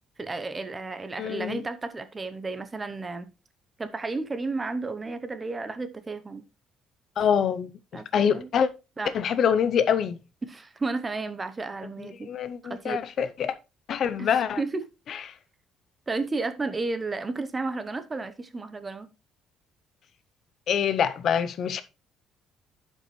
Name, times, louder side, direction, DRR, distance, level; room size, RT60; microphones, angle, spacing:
voice 1, 0.2-3.3 3.8-6.4 7.9-8.5 9.0-9.1 10.4-12.3 12.6-13.0 14.2-14.9 16.1-19.1, right 3 dB, 20° right, 0.7 m, -32 dB
voice 2, 1.2-1.6 7.2-8.7 9.1-10.2 12.0-13.5 13.9-14.6 20.7-21.8, left 8 dB, 50° left, 0.6 m, -25 dB
11.5 x 5.4 x 3.1 m
cardioid pair, 150°, 0 cm